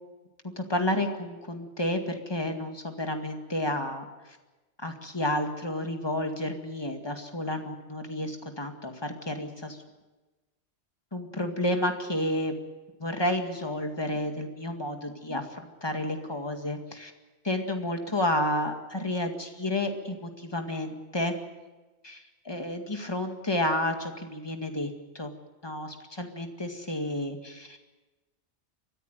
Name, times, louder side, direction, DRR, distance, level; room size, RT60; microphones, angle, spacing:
voice 1, 0.4-4.1 4.8-9.8 11.1-12.6 13.0-17.1 17.4-21.4 22.0-25.3 25.6-27.8, left 1 dB, 20° left, 4 dB, 2.1 m, -31 dB
23.0 x 14.5 x 9.2 m, 1.2 s
omnidirectional pair, 1.2 m